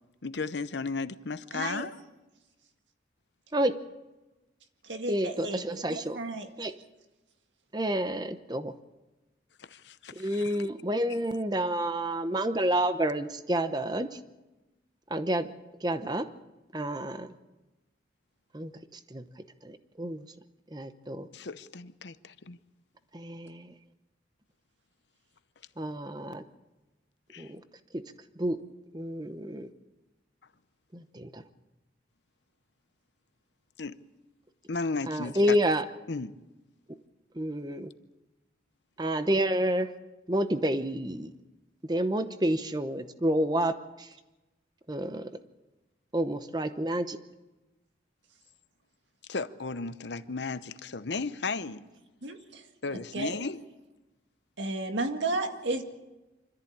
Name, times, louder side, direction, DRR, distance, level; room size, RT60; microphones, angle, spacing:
voice 1, 0.2-2.0 9.6-10.6 21.3-22.6 27.3-27.5 33.8-34.0 34.7-35.6 36.1-36.4 49.3-51.9 52.8-53.6, left 4 dB, 70° left, 0.8 m, -35 dB
voice 2, 1.5-1.9 4.8-6.5 52.2-52.6 52.9-53.4 54.6-55.8, right 2 dB, 85° right, 1.9 m, -33 dB
voice 3, 5.1-6.2 6.6-6.7 7.7-8.7 10.1-14.2 15.1-15.5 15.8-16.3 16.7-17.3 18.5-19.2 19.6-20.2 20.7-21.3 23.1-23.7 25.8-26.4 27.4-27.6 27.9-28.0 28.4-28.6 28.9-29.7 30.9-31.4 35.1-35.8 37.3-37.9 39.0-39.9 40.3-41.3 41.9-44.1 44.9-45.3 46.1-47.2, right 1 dB, 20° right, 0.9 m, -29 dB
25.5 x 13.5 x 8.8 m
head